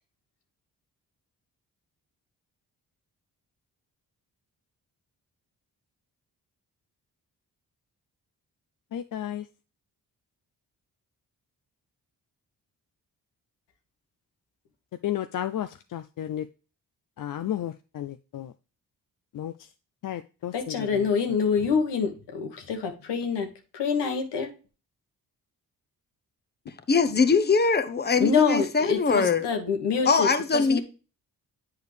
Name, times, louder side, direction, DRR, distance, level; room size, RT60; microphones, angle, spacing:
voice 1, 8.9-9.4 15.0-16.5 17.2-18.5 19.3-19.5 20.0-21.1, left 11 dB, 55° left, 0.5 m, -33 dB
voice 2, 20.5-24.5 28.2-30.8, left 6 dB, 85° left, 1.4 m, -26 dB
voice 3, 26.9-29.5 30.1-30.8, left 4 dB, 25° left, 0.9 m, -22 dB
8.3 x 4.7 x 3.3 m
supercardioid pair, 50°, 40 cm